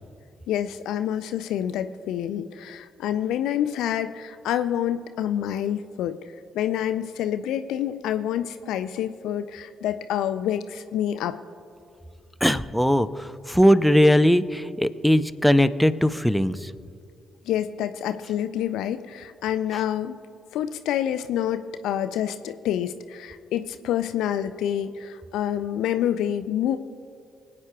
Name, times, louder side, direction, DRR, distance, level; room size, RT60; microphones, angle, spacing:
voice 1, 0.5-6.2 6.5-11.4 17.5-20.2 20.5-26.8, left 10 dB, 70° left, 11 dB, 0.4 m, -27 dB
voice 2, 12.4-16.7, equal, ahead, 11 dB, 0.6 m, -20 dB
25.0 x 8.7 x 2.3 m, 2.3 s
figure-of-eight pair, 40°, 0 cm